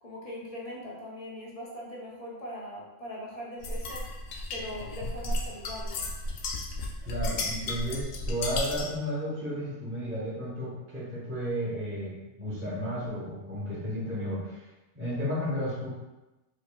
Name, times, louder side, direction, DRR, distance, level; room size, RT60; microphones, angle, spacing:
voice 1, 0.0-4.1 4.5-6.0, equal, 35° left, -4 dB, 0.6 m, -40 dB
sound 1, 3.6-9.0, left 2 dB, 70° left, 0.8 m, -34 dB
voice 2, 7.0-14.6 14.9-15.9, equal, 10° right, -9 dB, 0.8 m, -33 dB
4.9 x 2.5 x 2.3 m, 1.0 s
omnidirectional pair, 1.4 m